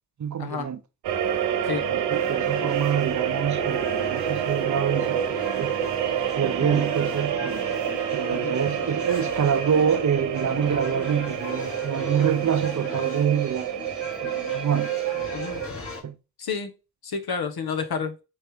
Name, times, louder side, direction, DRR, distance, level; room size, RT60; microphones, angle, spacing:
voice 1, 0.2-0.8 1.7-5.7 6.4-7.6 8.1-13.7 14.2-14.9 16.0-16.2, right 8 dB, 45° right, 0.7 m, -26 dB
sound 1, 1.0-15.7, right 9 dB, 75° right, 0.9 m, -28 dB
sound 2, 2.1-16.0, left 2 dB, 30° left, 2.3 m, -38 dB
voice 2, 16.4-16.7 17.0-18.1, left 6 dB, 60° left, 1.2 m, -30 dB
4.3 x 3.3 x 3.5 m
supercardioid pair, 45°, 42 cm